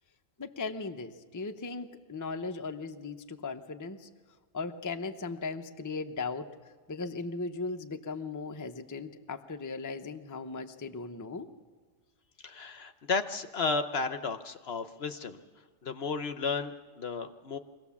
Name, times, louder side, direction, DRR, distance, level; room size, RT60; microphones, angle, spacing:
voice 1, 0.4-4.1 4.5-6.5 6.9-11.5, left 4 dB, 20° left, 7 dB, 0.7 m, -37 dB
voice 2, 12.4-15.4 15.8-17.6, left 4 dB, 55° left, 10 dB, 1.0 m, -33 dB
24.5 x 17.0 x 7.2 m, 1.5 s
omnidirectional pair, 1.4 m